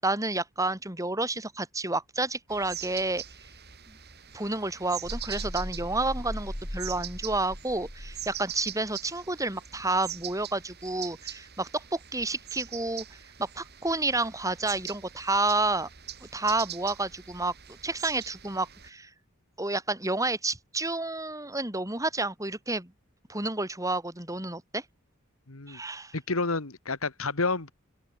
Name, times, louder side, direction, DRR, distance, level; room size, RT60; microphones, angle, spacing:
voice 1, 0.0-3.2 3.9-4.0 4.3-13.0 13.4-15.9 16.2-19.1 19.6-22.9 23.3-24.8 25.7-26.1, right 2 dB, 15° right, 7.2 m, -30 dB
sound 1, 2.5-18.9, right 11 dB, 50° right, 5.3 m, -43 dB
sound 2, 5.0-8.7, equal, 15° left, 3.1 m, -38 dB
voice 2, 25.5-25.8 26.1-27.7, left 3 dB, 90° left, 2.0 m, -29 dB
open air
head